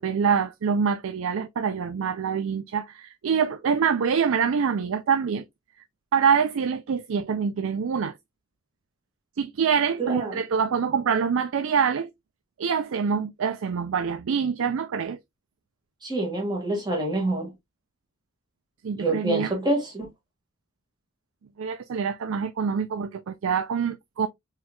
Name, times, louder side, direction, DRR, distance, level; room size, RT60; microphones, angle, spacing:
voice 1, 0.0-5.4 6.1-8.1 9.4-12.1 12.6-15.2 18.8-19.5 21.6-24.3, right 6 dB, 70° right, 0.4 m, -25 dB
voice 2, 10.0-10.4 16.0-17.5 19.0-20.1, right 2 dB, 20° right, 1.8 m, -26 dB
4.3 x 3.8 x 2.2 m
head